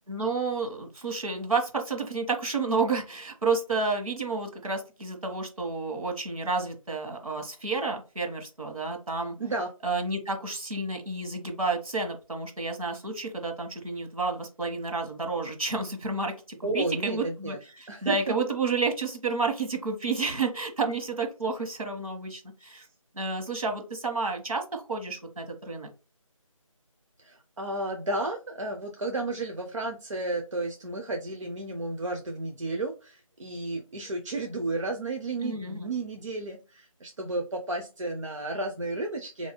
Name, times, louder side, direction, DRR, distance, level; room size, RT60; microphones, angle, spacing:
voice 1, 0.1-9.3 9.8-16.3 16.7-22.9 23.1-25.9 35.4-35.9, right 3 dB, 80° right, 3 dB, 1.2 m, -30 dB
voice 2, 16.6-17.6 17.9-18.2 27.2-39.5, right 2 dB, 60° right, 3 dB, 0.5 m, -32 dB
3.3 x 2.7 x 3.4 m, 0.32 s
figure-of-eight pair, 165°, 18 cm